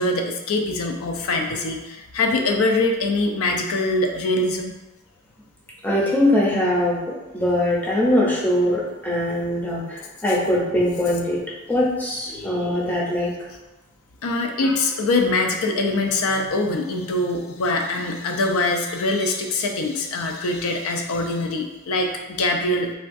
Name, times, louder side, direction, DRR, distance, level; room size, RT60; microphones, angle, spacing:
voice 1, 0.0-4.7 14.2-22.9, left 2 dB, 65° left, 3 dB, 0.4 m, -23 dB
voice 2, 5.8-11.4 11.7-13.3, left 1 dB, 10° left, -5 dB, 0.6 m, -22 dB
3.4 x 2.3 x 2.5 m, 1.1 s
head